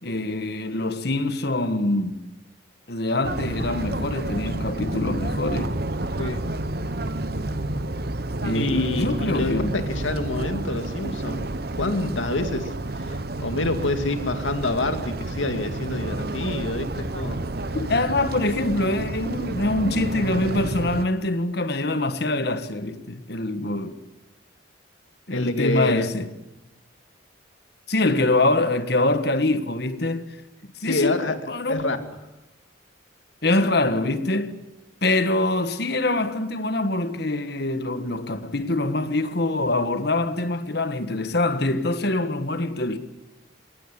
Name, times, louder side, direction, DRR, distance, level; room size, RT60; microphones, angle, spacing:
voice 1, 0.0-2.2 2.9-5.8 8.4-9.8 17.7-24.0 25.3-26.3 27.9-30.4 30.8-31.9 33.4-34.6 35.0-43.0, left 2 dB, 55° left, 1.6 m, -24 dB
sound 1, 3.2-21.1, right 2 dB, 50° right, 1.0 m, -30 dB
voice 2, 8.5-17.5 25.3-26.0 30.8-31.4 31.7-32.0, left 2 dB, 75° left, 2.4 m, -27 dB
23.0 x 18.5 x 10.0 m
head